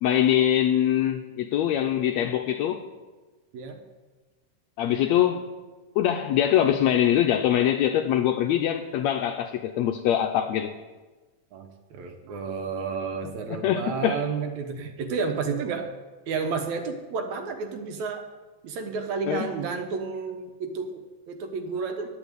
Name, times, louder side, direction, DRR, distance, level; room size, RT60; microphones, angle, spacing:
voice 1, 0.0-2.9 4.8-5.5 6.0-10.7 13.5-14.2 19.3-19.5, left 10 dB, 85° left, 1.6 m, -23 dB
voice 2, 11.5-15.9 16.3-18.2 18.6-22.1, right 5 dB, 65° right, 2.3 m, -31 dB
10.5 x 9.0 x 8.0 m
omnidirectional pair, 3.8 m